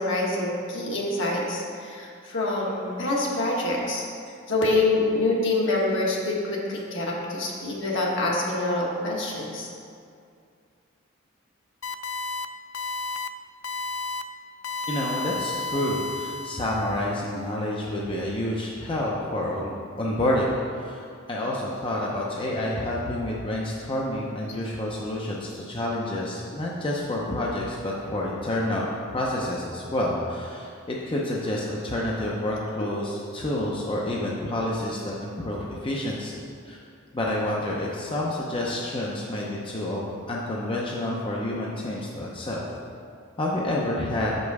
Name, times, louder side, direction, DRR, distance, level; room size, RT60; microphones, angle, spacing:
voice 1, 0.0-4.1 4.5-9.7, left 2 dB, 60° left, -3 dB, 1.3 m, -26 dB
sound 1, 11.8-12.5 12.7-13.3 13.6-14.2 14.6-17.0, left 3 dB, 80° left, 0.3 m, -32 dB
voice 2, 14.9-36.4 36.7-36.8 37.1-42.6 43.4-44.4, left 1 dB, 25° left, -4 dB, 0.6 m, -29 dB
6.8 x 5.3 x 4.7 m, 2.3 s
head